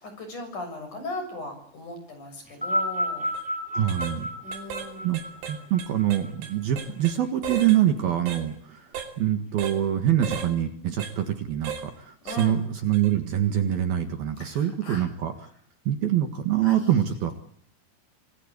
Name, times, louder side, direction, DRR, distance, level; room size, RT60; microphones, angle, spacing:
voice 1, 0.0-3.3 4.4-5.1 12.2-12.6 14.4-15.1 16.6-16.9, left 2 dB, 40° left, 6 dB, 8.2 m, -38 dB
sound 1, 2.5-7.0 7.9-8.0, equal, ahead, 3.9 m, -31 dB
sound 2, 3.2-3.4 3.9-4.2 4.5-4.9 5.1-7.2 7.4-7.8 8.3-8.4 9.0-9.1 9.6-9.8 10.2-10.5 11.0-11.1 11.7-11.9 12.3-12.5 12.9-13.1, right 8 dB, 85° right, 5.5 m, -35 dB
voice 2, 3.7-4.3 5.0-5.2 5.5-8.9 9.2-15.3 15.9-17.3, right 11 dB, 60° right, 7 dB, 3.3 m, -25 dB
27.0 x 20.0 x 8.4 m, 0.64 s
omnidirectional pair, 5.3 m